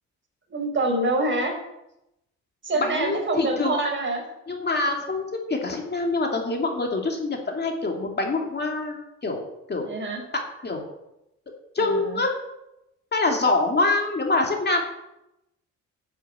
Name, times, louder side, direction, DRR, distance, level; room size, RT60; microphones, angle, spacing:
voice 1, 0.5-1.5 2.6-4.2 9.8-10.2 11.8-12.2, right 2 dB, 40° right, 2 dB, 4.3 m, -26 dB
voice 2, 2.8-3.7 4.5-9.9 10.3-10.8 11.7-12.3 13.1-14.8, left 3 dB, 35° left, 2 dB, 2.7 m, -25 dB
10.5 x 7.4 x 8.6 m, 0.88 s
cardioid pair, 90°, 30 cm